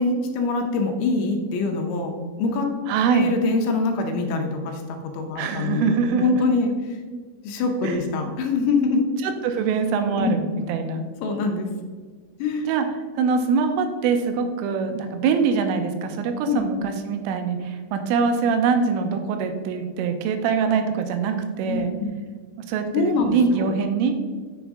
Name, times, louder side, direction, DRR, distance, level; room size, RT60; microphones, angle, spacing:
voice 1, 0.0-2.7 3.1-5.9 6.2-7.0 7.4-9.1 10.1-10.4 11.2-11.7 12.4-12.7 16.5-16.6 21.7-22.1 22.9-23.7, left 3 dB, 80° left, 4 dB, 3.0 m, -24 dB
voice 2, 2.9-3.3 5.4-6.4 7.8-8.0 9.2-10.4 10.7-11.0 12.7-12.9 13.2-21.9 22.7-24.2, right 5 dB, 90° right, 7 dB, 3.3 m, -23 dB
7.3 x 7.2 x 3.6 m, 1.5 s
omnidirectional pair, 5.7 m